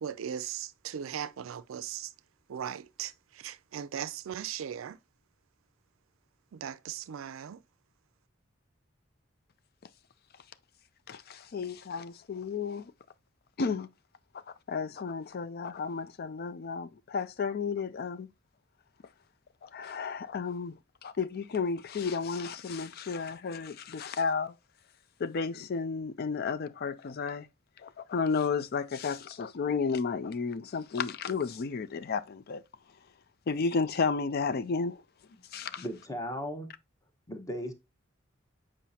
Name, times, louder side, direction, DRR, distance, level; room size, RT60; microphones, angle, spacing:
voice 1, 0.0-2.1 2.5-5.0 6.5-7.6, right 9 dB, 80° right, 0.4 m, -38 dB
voice 2, 11.1-12.9 13.6-13.9 14.7-18.3 19.6-20.7 21.0-24.5 25.2-27.5 27.8-32.6 33.5-35.0 35.5-35.8, left 5 dB, 50° left, 0.4 m, -32 dB
voice 3, 35.8-36.7 37.3-37.7, equal, 15° left, 1.1 m, -36 dB
7.4 x 5.0 x 2.8 m
head